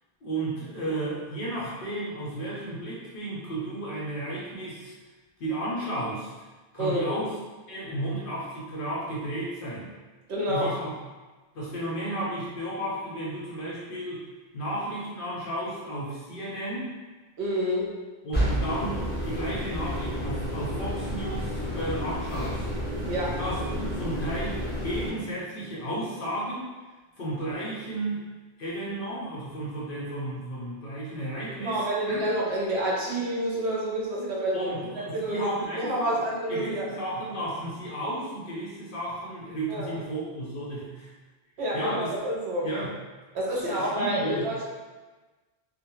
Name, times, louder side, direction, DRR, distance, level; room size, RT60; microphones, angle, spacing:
voice 1, 0.2-4.9 5.4-6.3 6.7-7.4 7.7-9.9 10.5-10.9 11.5-14.2 14.5-17.0 18.2-22.7 23.4-26.7 27.2-28.3 28.6-32.3 34.5-36.2 36.5-41.1 41.7-42.1 42.6-42.9 43.5-44.5, right 1 dB, 60° left, -6 dB, 0.7 m, -33 dB
voice 2, 6.8-7.2 10.3-10.7 17.4-17.9 23.1-23.4 31.6-34.7 35.1-36.9 39.7-40.0 41.6-42.7 43.3-44.6, right 1 dB, 70° right, -4 dB, 0.9 m, -28 dB
sound 1, 18.3-25.1, equal, 15° left, 0.4 m, -30 dB
2.2 x 2.2 x 2.9 m, 1.3 s
omnidirectional pair, 1.2 m